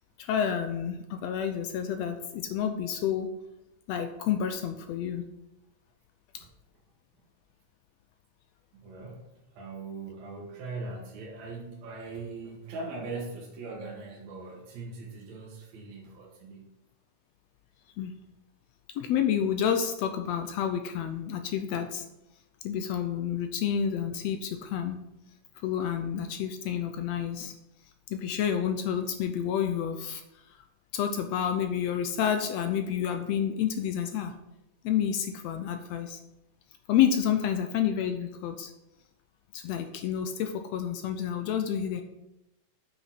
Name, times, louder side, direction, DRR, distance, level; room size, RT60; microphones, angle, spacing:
voice 1, 0.2-3.3 3.9-5.2 18.0-18.1 18.9-22.0 22.6-25.0 25.6-27.5 28.1-30.2 30.9-34.3 34.8-36.2 36.9-38.7 39.5-42.0, left 9 dB, 90° left, 7 dB, 1.5 m, -29 dB
voice 2, 8.8-9.2 9.6-16.7, right 3 dB, 65° right, -3 dB, 2.5 m, -40 dB
8.3 x 5.8 x 5.8 m, 0.92 s
omnidirectional pair, 3.6 m